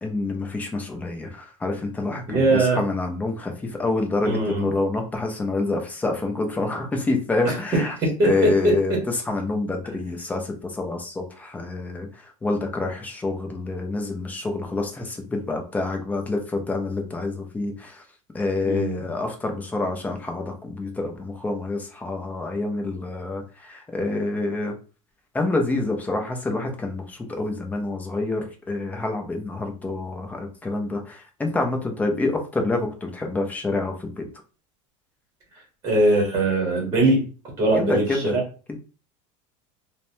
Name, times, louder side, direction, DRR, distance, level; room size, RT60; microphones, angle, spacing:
voice 1, 0.0-8.0 8.2-9.0 9.3-12.1 12.4-18.0 18.3-24.7 25.3-34.2 37.8-38.3 38.7-38.8, left 2 dB, 10° left, 3 dB, 0.4 m, -27 dB
voice 2, 2.3-2.8 4.2-4.6 7.4-7.6 8.0-8.7 18.6-19.0 35.8-37.2 37.6-38.4, right 2 dB, 20° right, -1 dB, 1.0 m, -21 dB
2.9 x 2.1 x 2.6 m, 0.35 s
supercardioid pair, 150°, 17 cm